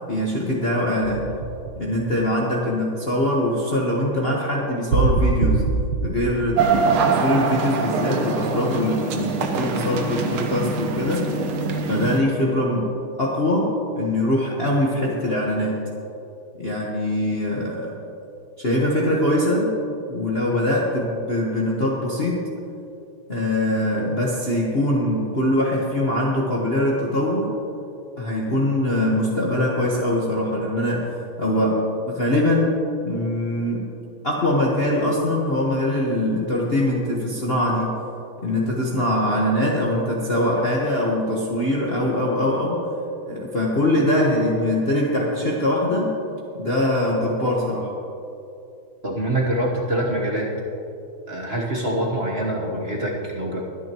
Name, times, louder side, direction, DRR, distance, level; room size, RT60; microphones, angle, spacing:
voice 1, 0.1-1.3 1.8-5.7 6.0-11.3 11.9-12.9 13.2-15.8 16.6-18.0 18.6-19.7 20.1-22.5 23.3-27.5 28.2-31.1 31.4-32.8 33.0-33.9 34.2-38.0 38.4-42.8 43.3-46.2 46.6-47.9, left 1 dB, 35° left, -4 dB, 1.3 m, -22 dB
sound 1, 1.0-2.4 4.9-7.4, right 4 dB, 65° right, 1.7 m, -23 dB
sound 2, 6.6-12.2, right 4 dB, 85° right, 1.9 m, -23 dB
voice 2, 49.0-50.5 51.3-53.6, right 1 dB, 35° right, -1 dB, 1.3 m, -25 dB
22.5 x 9.9 x 3.0 m, 2.7 s
omnidirectional pair, 2.3 m